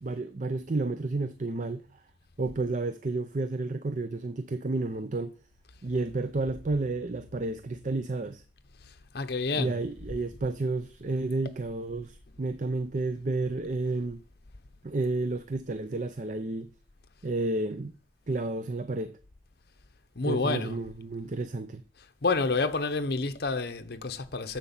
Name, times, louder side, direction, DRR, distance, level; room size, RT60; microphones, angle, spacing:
voice 1, 0.0-2.0 2.4-5.3 5.8-8.4 9.6-14.2 14.8-16.7 17.2-17.9 18.3-19.1 20.2-21.8, right 2 dB, 40° right, 0.5 m, -31 dB
voice 2, 8.9-9.8 20.2-20.8 22.2-24.6, left 3 dB, 55° left, 0.9 m, -29 dB
11.0 x 6.6 x 7.2 m
head